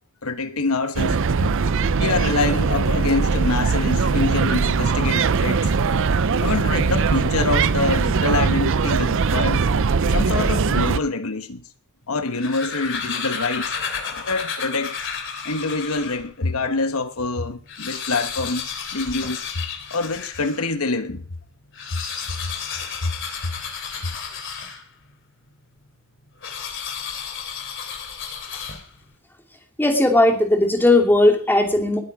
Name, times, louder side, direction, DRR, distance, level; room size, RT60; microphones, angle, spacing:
voice 1, 0.2-1.2 1.6-5.7 6.4-9.7 10.1-11.6 12.1-13.8 14.3-15.0 15.4-19.4 19.9-21.2 23.0-23.1, left 3 dB, 80° left, 1.2 m, -25 dB
sound 1, 1.0-11.0, right 5 dB, 65° right, 0.6 m, -20 dB
sound 2, 12.1-16.3 16.9-17.0 17.2-17.3 17.6-20.7 21.6-25.1 26.4-29.1, left 6 dB, 60° left, 3.0 m, -32 dB
voice 2, 29.8-32.0, left 1 dB, 10° left, 2.9 m, -17 dB
20.5 x 8.6 x 4.9 m
head